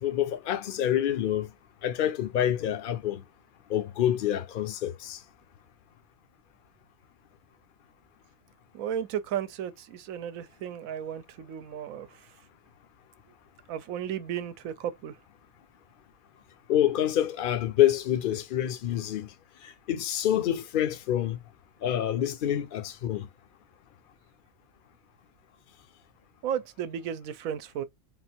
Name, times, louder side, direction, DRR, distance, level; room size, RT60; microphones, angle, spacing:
voice 1, 0.0-1.5 1.8-3.2 3.7-5.2 16.7-19.3 19.6-21.4 21.8-23.3, left 11 dB, 50° left, 0.7 m, -27 dB
voice 2, 8.7-12.1 13.7-15.1 26.4-27.8, right 9 dB, 80° right, 1.0 m, -34 dB
3.8 x 2.6 x 4.3 m
omnidirectional pair, 1.4 m